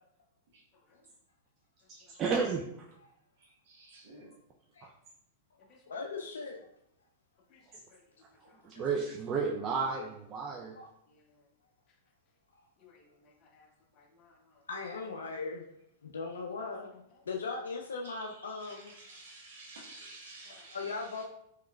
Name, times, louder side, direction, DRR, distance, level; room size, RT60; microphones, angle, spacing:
voice 1, 0.7-1.1 2.0-2.2 5.6-6.0 7.5-8.7 11.1-11.5 12.8-14.6 17.1-17.2 20.4-20.7, left 4 dB, 35° left, 2 dB, 0.7 m, -64 dB
voice 2, 1.9-2.6 4.8-4.9 8.6-10.8, right 5 dB, 30° right, -1 dB, 0.4 m, -32 dB
voice 3, 3.4-4.3 18.0-18.2 18.5-20.8, right 2 dB, 70° right, -3 dB, 1.0 m, -51 dB
voice 4, 5.9-6.7 8.7-8.8 9.9-10.1 10.7-10.9 14.7-15.7 16.0-18.9 20.7-21.2, left 4 dB, 85° left, 1 dB, 0.3 m, -39 dB
3.6 x 3.0 x 2.2 m, 0.76 s
hypercardioid pair, 110°, 0 cm